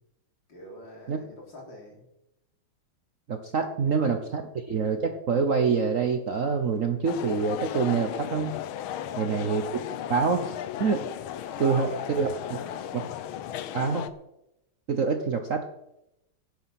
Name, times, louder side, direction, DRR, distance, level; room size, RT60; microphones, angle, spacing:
voice 1, 0.5-2.0 3.7-4.0 9.0-9.4 11.5-13.1, left 1 dB, 60° left, -1 dB, 4.3 m, -43 dB
voice 2, 3.3-8.5 9.2-9.6 10.1-11.0 11.6-11.9 12.2-12.6 12.9-13.1 13.7-14.1 14.9-15.6, right 5 dB, 50° right, 6 dB, 1.0 m, -26 dB
sound 1, 7.1-14.1, left 11 dB, 75° left, 1.6 m, -35 dB
17.0 x 9.0 x 5.9 m, 0.86 s
omnidirectional pair, 2.3 m